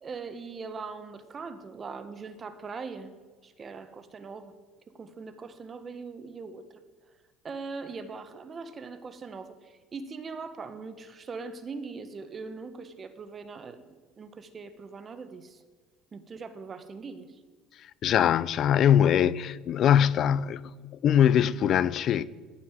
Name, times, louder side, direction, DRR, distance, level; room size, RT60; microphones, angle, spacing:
voice 1, 0.0-3.1 3.4-4.5 4.9-6.8 7.4-15.6 16.1-17.4, right 4 dB, 35° right, 1.6 m, -41 dB
voice 2, 18.0-20.6 21.0-22.2, left 9 dB, 55° left, 0.6 m, -22 dB
15.0 x 9.6 x 9.3 m
supercardioid pair, 95°, 0 cm